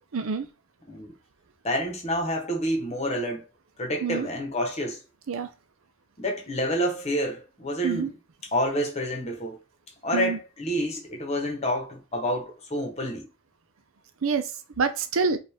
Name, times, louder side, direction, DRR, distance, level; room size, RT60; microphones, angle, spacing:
voice 1, 0.1-0.5 4.0-4.3 5.3-5.5 7.8-8.1 10.1-10.4 14.2-14.5 14.8-15.4, right 5 dB, 70° right, 0.5 m, -26 dB
voice 2, 1.6-3.5 3.8-5.0 6.2-8.1 8.5-9.6 10.0-13.3, equal, 30° left, 1.1 m, -28 dB
5.1 x 2.5 x 3.4 m
head